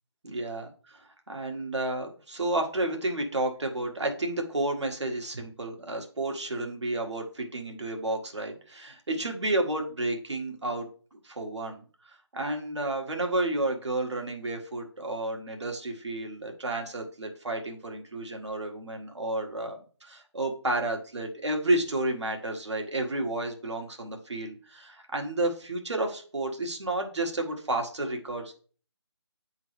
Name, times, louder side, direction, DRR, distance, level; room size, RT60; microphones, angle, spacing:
voice 1, 0.2-1.0 1.3-10.9 11.2-11.8 12.3-28.5, right 2 dB, 80° right, 2 dB, 1.6 m, -31 dB
8.9 x 3.7 x 3.1 m, 0.41 s
figure-of-eight pair, 170°, 15 cm